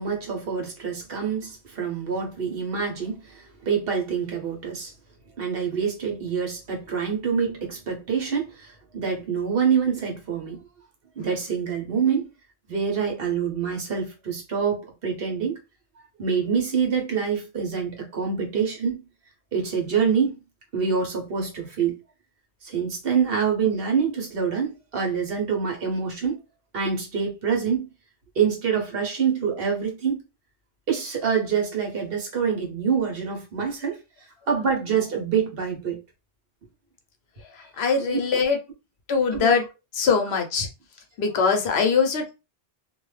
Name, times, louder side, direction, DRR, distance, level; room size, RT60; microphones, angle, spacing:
voice 1, 0.0-4.9 5.4-10.6 11.2-12.3 12.7-15.6 16.2-19.0 19.5-20.4 20.7-22.0 22.6-26.4 26.7-27.9 28.3-30.2 30.9-34.0 34.5-36.0 38.0-38.2 39.3-39.6, right 6 dB, 65° right, 1.1 m, -26 dB
voice 2, 37.5-38.6 39.1-39.6 39.9-40.7 41.2-42.3, left 5 dB, 85° left, 1.0 m, -22 dB
2.6 x 2.2 x 3.1 m
omnidirectional pair, 1.0 m